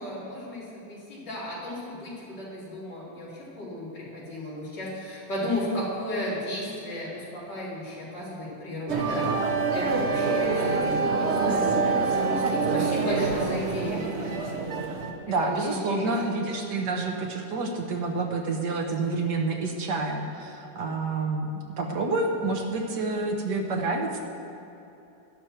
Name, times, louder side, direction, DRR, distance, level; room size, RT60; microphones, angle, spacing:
voice 1, 0.0-14.4 15.3-16.1, left 1 dB, 60° left, -8 dB, 4.1 m, -34 dB
sound 1, 8.9-15.1, right 4 dB, 45° right, 0.9 m, -26 dB
voice 2, 15.3-24.2, right 3 dB, 65° right, 2 dB, 1.4 m, -28 dB
12.0 x 11.5 x 4.5 m, 2.9 s
omnidirectional pair, 2.1 m